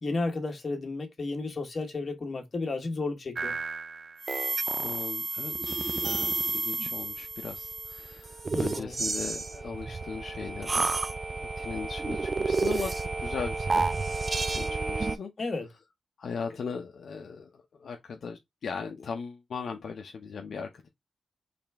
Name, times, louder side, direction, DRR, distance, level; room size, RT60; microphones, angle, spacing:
voice 1, 0.0-3.6 8.5-9.0 15.4-15.7, left 3 dB, 40° left, 1.4 m, -33 dB
sound 1, 3.4-15.2, right 3 dB, 30° right, 0.3 m, -31 dB
voice 2, 4.8-10.9 11.4-13.8 14.5-15.3 16.2-20.9, left 5 dB, 65° left, 0.7 m, -38 dB
4.2 x 3.3 x 3.4 m
wide cardioid pair, 120°, 0 cm